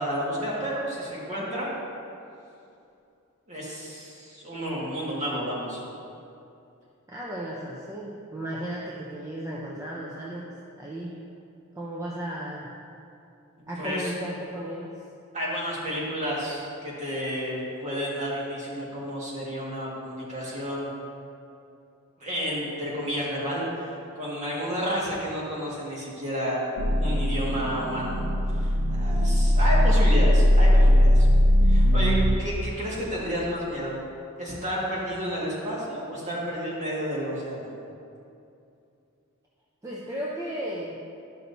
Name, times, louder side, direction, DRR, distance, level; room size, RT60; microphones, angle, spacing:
voice 1, 0.0-1.7 3.5-5.8 13.8-14.1 15.3-20.9 22.2-26.6 27.0-28.2 28.5-31.3 31.6-34.0 34.4-37.7, equal, 30° right, -6 dB, 1.7 m, -31 dB
voice 2, 7.1-10.5 10.8-11.1 11.7-12.7 13.7-14.9 39.8-41.0, right 1 dB, 15° right, -5 dB, 0.6 m, -34 dB
sound 1, 26.8-32.4, equal, 85° right, 0.6 m, -19 dB
12.0 x 5.8 x 2.7 m, 2.6 s
head